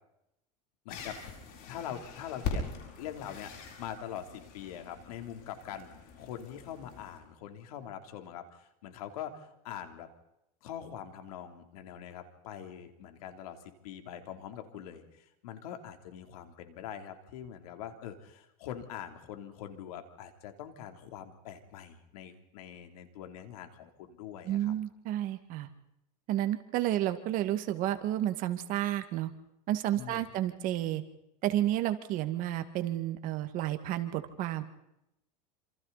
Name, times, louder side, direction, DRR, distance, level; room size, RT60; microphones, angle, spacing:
voice 1, 0.8-1.2 1.7-5.9 6.1-10.1 10.6-24.7 29.9-30.3, left 9 dB, 80° left, 6 dB, 3.4 m, -43 dB
sound 1, 0.9-7.2, left 4 dB, 55° left, 7.5 m, -42 dB
voice 2, 24.5-25.7 26.3-29.3 29.7-31.0 31.4-34.6, right 13 dB, 45° right, 9 dB, 2.0 m, -31 dB
27.0 x 27.0 x 4.2 m, 0.83 s
supercardioid pair, 145°, 19 cm